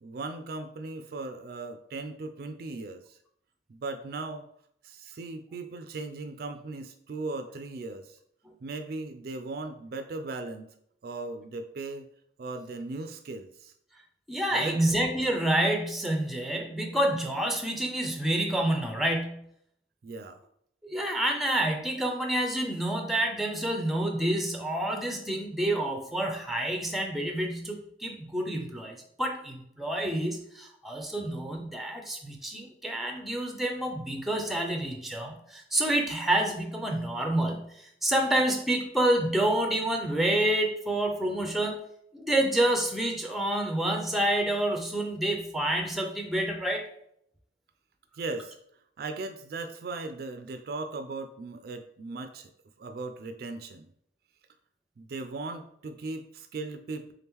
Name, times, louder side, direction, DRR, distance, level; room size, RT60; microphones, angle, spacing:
voice 1, 0.0-3.2 3.7-4.5 4.8-8.2 8.6-10.7 11.0-12.1 12.4-13.7 14.5-14.9 20.0-20.4 48.2-48.6 49.0-52.5 52.8-53.9 55.0-57.1, right 3 dB, 55° right, 8 dB, 0.3 m, -38 dB
voice 2, 14.3-19.5 20.8-37.7 38.0-41.8 42.1-46.9, right 1 dB, ahead, 3 dB, 0.5 m, -28 dB
3.7 x 2.9 x 3.5 m, 0.70 s
head